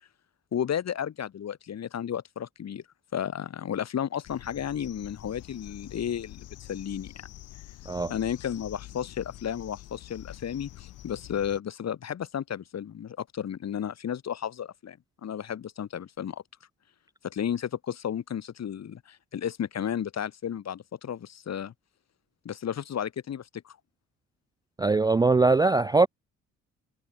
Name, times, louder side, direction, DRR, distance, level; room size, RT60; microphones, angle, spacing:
voice 1, 0.5-2.8 3.1-7.1 8.1-16.4 17.2-21.7 22.4-23.8, left 9 dB, 60° left, 6.7 m, -33 dB
sound 1, 4.2-11.6, left 14 dB, 85° left, 4.3 m, -46 dB
voice 2, 24.8-26.1, right 3 dB, 15° right, 0.3 m, -21 dB
cardioid pair, 90°, 30 cm